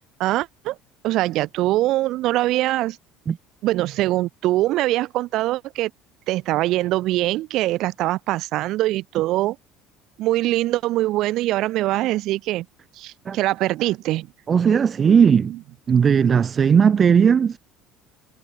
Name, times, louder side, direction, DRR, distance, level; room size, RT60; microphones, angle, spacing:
voice 1, 0.2-0.8 1.0-3.0 3.6-5.9 6.3-9.6 10.2-12.7 13.0-14.3, right 16 dB, 65° right, 3.7 m, -23 dB
voice 2, 14.5-15.6 15.9-17.6, right 7 dB, 40° right, 2.8 m, -17 dB
hypercardioid pair, 70°, 0 cm